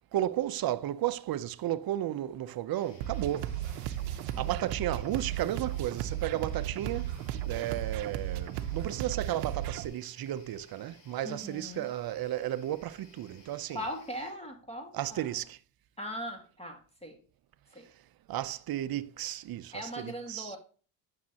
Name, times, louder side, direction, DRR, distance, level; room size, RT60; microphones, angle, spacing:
voice 1, 0.1-4.0 4.3-7.1 7.5-13.8 14.9-15.6 18.3-20.5, right 13 dB, 45° right, 0.7 m, -33 dB
sound 1, 2.7-14.3, left 4 dB, 55° left, 2.6 m, -60 dB
sound 2, 3.0-9.9, right 11 dB, 85° right, 0.7 m, -35 dB
voice 2, 11.2-11.9 13.7-15.4 16.0-17.2 17.7-17.9 19.7-20.6, equal, 10° left, 1.9 m, -40 dB
9.3 x 6.4 x 2.9 m
supercardioid pair, 65°, 50 cm